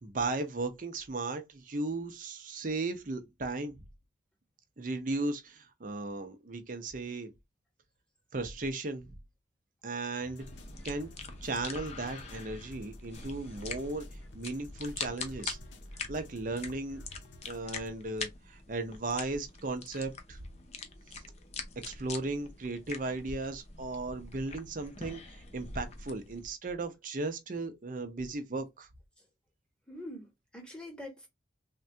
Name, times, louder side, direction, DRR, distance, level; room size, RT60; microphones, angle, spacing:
voice 1, 0.0-3.8 4.8-7.3 8.3-9.2 9.8-10.5 10.8-11.1 11.4-14.1 14.3-15.6 16.1-17.0 17.5-20.4 21.1-21.2 21.8-28.9, right 2 dB, 45° right, 0.6 m, -36 dB
sound 1, 10.2-17.9, left 1 dB, 80° left, 0.6 m, -54 dB
sound 2, 10.4-26.4, left 4 dB, 35° left, 0.5 m, -44 dB
voice 2, 29.9-31.3, left 1 dB, 5° left, 0.9 m, -44 dB
3.4 x 2.2 x 2.7 m
head